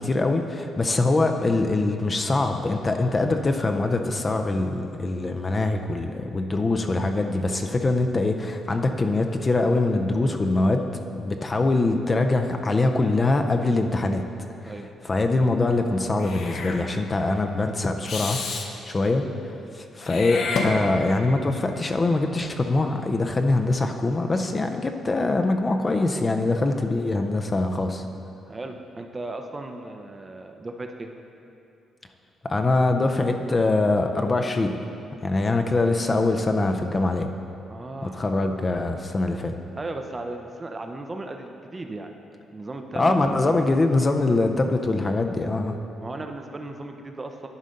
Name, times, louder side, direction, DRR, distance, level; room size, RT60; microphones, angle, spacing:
voice 1, 0.0-10.9 11.1-14.2 15.1-18.4 18.9-19.2 19.7-28.0 32.5-34.7 35.2-37.3 38.0-39.5 42.9-45.8, left 2 dB, 30° left, 5 dB, 0.5 m, -23 dB
Meow / Hiss, 16.2-16.8 18.0-18.7 20.0-21.2, left 3 dB, 65° left, 0.8 m, -29 dB
voice 2, 28.5-31.1 37.7-38.3 39.8-42.2 42.5-43.6 46.0-47.5, right 2 dB, 25° right, 5 dB, 0.6 m, -36 dB
11.0 x 4.1 x 5.2 m, 2.6 s
cardioid pair, 100°, 0 cm